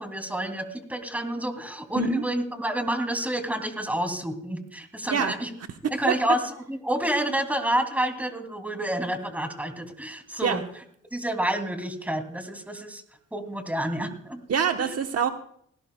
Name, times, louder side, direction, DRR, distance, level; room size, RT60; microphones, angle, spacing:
voice 1, 0.0-5.5 5.9-10.6 11.1-13.0 13.3-14.4 14.8-14.9, right 1 dB, 5° right, 6 dB, 2.7 m, -29 dB
voice 2, 14.5-15.3, right 7 dB, 55° right, 6 dB, 1.1 m, -25 dB
20.0 x 17.5 x 2.3 m, 0.65 s
cardioid pair, 90°, 30 cm